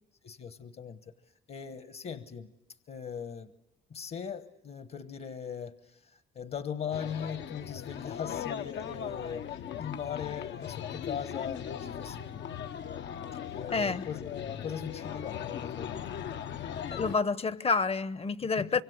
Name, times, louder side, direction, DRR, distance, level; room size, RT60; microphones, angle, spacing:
voice 1, 0.2-1.0 1.5-2.5 2.9-3.5 3.9-12.5 13.5-16.2 18.5-18.8, left 7 dB, 50° left, 1.2 m, -39 dB
sound 1, 6.9-17.2, left 9 dB, 70° left, 0.9 m, -38 dB
voice 2, 13.7-14.0 16.9-18.8, left 4 dB, 30° left, 0.8 m, -28 dB
25.5 x 24.0 x 8.0 m
cardioid pair, 90°, 20 cm